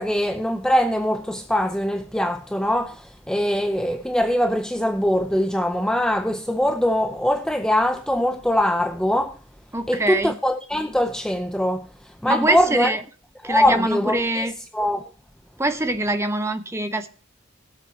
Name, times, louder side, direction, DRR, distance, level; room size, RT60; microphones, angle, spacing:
voice 1, 0.0-9.4 9.9-12.9 13.4-15.1, left 1 dB, 5° left, 0.5 m, -22 dB
voice 2, 9.7-10.4 12.3-13.0 13.4-14.5 15.6-17.1, right 1 dB, 15° right, 1.0 m, -24 dB
21.0 x 7.6 x 2.7 m
head